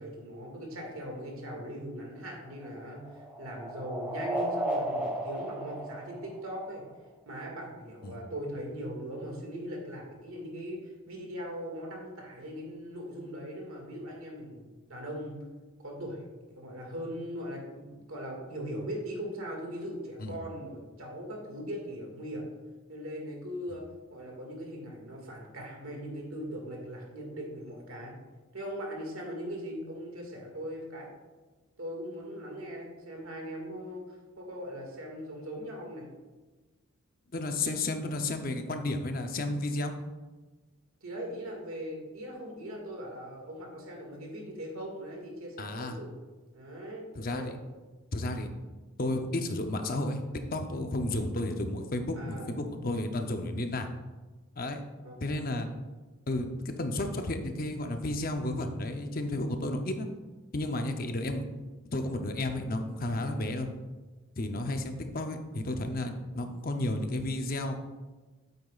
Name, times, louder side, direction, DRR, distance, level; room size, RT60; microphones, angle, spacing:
voice 1, 0.0-6.8 7.3-15.4 15.8-16.2 16.5-22.4 22.9-23.8 24.1-28.2 28.5-31.1 31.8-36.1 41.0-46.2 46.5-47.5 52.2-52.5 55.0-55.1, equal, 90° right, 0 dB, 2.0 m, -40 dB
sound 1, 2.1-6.9, right 1 dB, 10° right, 1.4 m, -35 dB
voice 2, 37.3-39.9 45.6-46.0 47.2-47.5 48.1-48.5 49.0-53.9 54.6-54.8 55.2-55.7 56.3-60.1 60.5-61.4 61.9-63.7 64.4-67.8, left 2 dB, 45° left, 5 dB, 0.7 m, -32 dB
9.1 x 8.0 x 2.4 m, 1.2 s
head